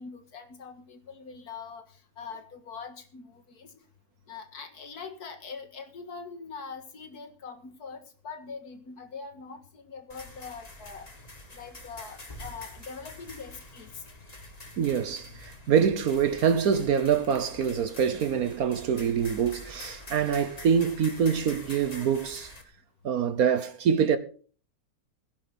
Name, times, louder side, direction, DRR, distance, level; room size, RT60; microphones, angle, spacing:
voice 1, 0.0-3.7 4.3-11.1 11.5-14.0, left 5 dB, 90° left, 2.2 m, -43 dB
sound 1, 10.1-22.6, left 1 dB, 25° left, 2.0 m, -46 dB
voice 2, 14.8-22.5 23.0-24.2, right 7 dB, 70° right, 1.3 m, -25 dB
17.0 x 10.5 x 4.0 m
omnidirectional pair, 1.6 m